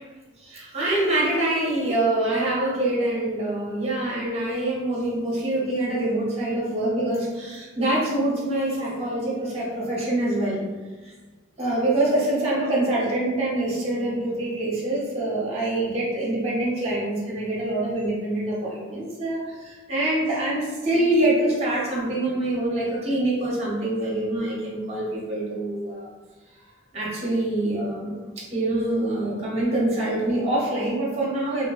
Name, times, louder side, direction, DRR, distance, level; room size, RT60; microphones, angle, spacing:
voice 1, 0.4-10.6 11.6-26.1 26.9-31.7, right 1 dB, 30° right, -5 dB, 0.7 m, -25 dB
3.0 x 2.1 x 2.3 m, 1.3 s
head